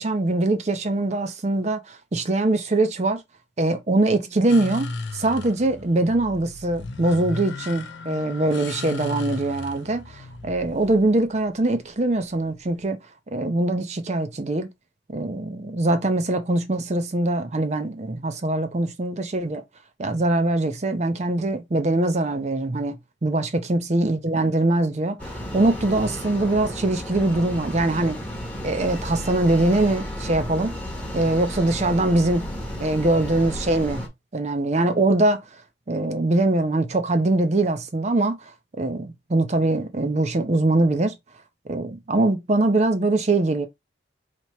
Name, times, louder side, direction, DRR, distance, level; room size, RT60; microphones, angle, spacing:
voice 1, 0.0-3.2 3.6-13.0 13.3-14.7 15.1-19.6 20.0-28.2 28.6-30.7 31.1-32.5 32.8-34.0 34.3-35.4 35.9-38.4 38.8-41.1 41.7-43.7, right 2 dB, 35° right, 0.5 m, -22 dB
sound 1, 4.5-12.8, left 3 dB, 70° left, 0.7 m, -36 dB
sound 2, 25.2-34.1, equal, 10° left, 0.9 m, -33 dB
2.9 x 2.9 x 4.4 m
head